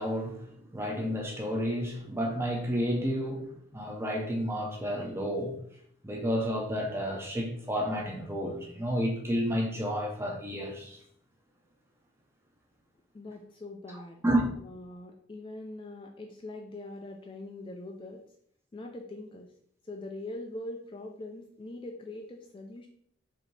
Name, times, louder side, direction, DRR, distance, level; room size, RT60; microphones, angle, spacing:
voice 1, 0.0-5.5 6.0-11.0 14.2-14.4, equal, 10° right, 0.6 m, -31 dB
voice 2, 13.1-14.2 14.6-18.2 18.7-19.5 19.8-22.9, left 2 dB, 25° left, 0.3 m, -42 dB
4.9 x 2.7 x 3.2 m
head